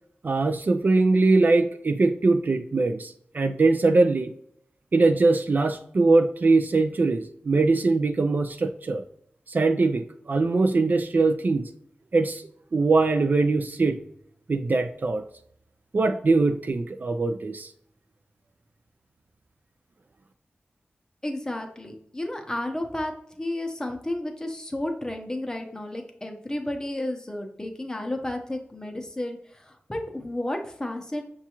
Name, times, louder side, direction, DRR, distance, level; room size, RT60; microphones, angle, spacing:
voice 1, 0.2-4.3 4.9-9.0 9.5-11.7 12.1-12.4 12.7-14.0 14.5-15.2 15.9-17.7, right 3 dB, 50° right, 7 dB, 0.3 m, -22 dB
voice 2, 21.2-31.2, left 1 dB, 15° left, 4 dB, 0.7 m, -32 dB
5.9 x 2.3 x 2.9 m, 0.67 s
wide cardioid pair, 65°, 4 cm